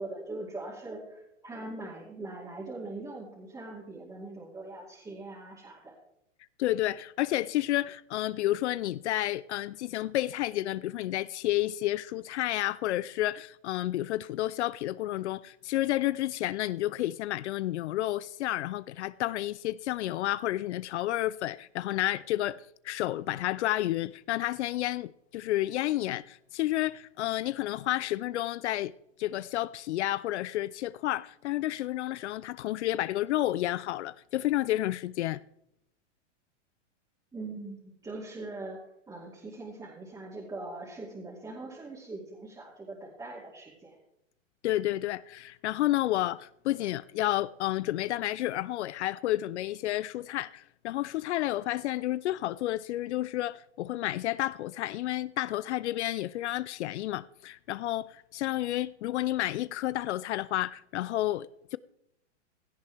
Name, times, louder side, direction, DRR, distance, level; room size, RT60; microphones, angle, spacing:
voice 1, 0.0-5.9 37.3-44.0, right 2 dB, 10° right, 2.3 m, -41 dB
voice 2, 6.6-28.9 29.2-35.4 44.6-61.8, left 15 dB, 65° left, 0.5 m, -31 dB
17.0 x 13.0 x 3.4 m
hypercardioid pair, 140°, 37 cm